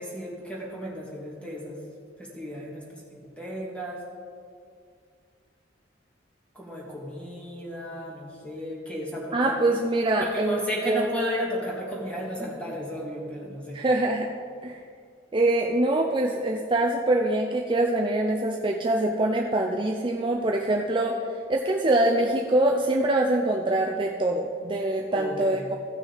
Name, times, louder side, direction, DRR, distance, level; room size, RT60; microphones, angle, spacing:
voice 1, 0.0-1.8 2.2-3.0 3.4-4.0 6.5-9.5 10.2-13.8 25.1-25.6, equal, 5° left, -4 dB, 2.0 m, -34 dB
voice 2, 9.3-11.1 13.7-14.3 14.6-14.8 15.3-21.2 21.5-25.8, right 1 dB, 25° right, 0 dB, 0.5 m, -24 dB
15.5 x 6.0 x 4.0 m, 2.2 s
head